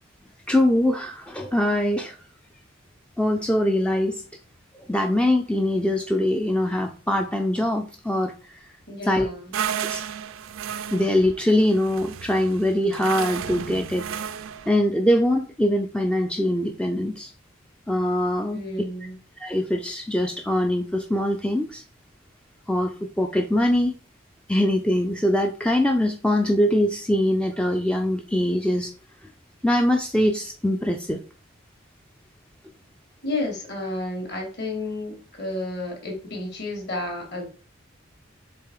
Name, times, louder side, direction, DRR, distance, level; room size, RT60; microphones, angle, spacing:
voice 1, 0.5-2.2 3.2-4.2 4.9-8.7 9.0-9.3 9.8-10.0 10.9-14.1 14.7-17.3 17.9-18.6 19.4-21.8 22.7-23.9 24.5-28.9 29.2-29.3 29.6-31.2, left 1 dB, 5° left, 4 dB, 0.4 m, -23 dB
voice 2, 8.9-9.5 18.5-19.2 33.2-37.5, left 2 dB, 50° left, 1 dB, 2.7 m, -31 dB
sound 1, 9.5-14.7, right 8 dB, 75° right, 0.5 m, -33 dB
6.9 x 3.8 x 4.8 m, 0.38 s
head